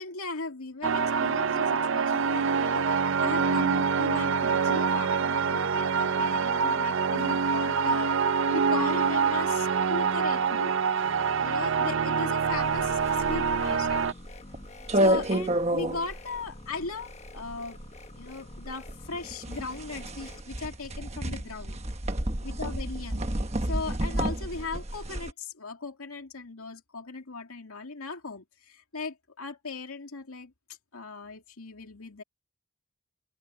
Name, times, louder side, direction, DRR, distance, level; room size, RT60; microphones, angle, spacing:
voice 1, 0.0-2.8 3.2-8.2 8.5-10.7 11.3-14.1 14.9-17.8 18.2-21.8 22.4-23.2 23.6-30.5 30.9-32.2, left 3 dB, 85° left, 2.4 m, -38 dB
sound 1, 0.8-14.1, right 5 dB, 60° right, 0.5 m, -26 dB
sound 2, 12.4-20.4, left 2 dB, 30° left, 1.3 m, -48 dB
sound 3, 12.6-25.3, right 1 dB, 30° right, 1.2 m, -30 dB
head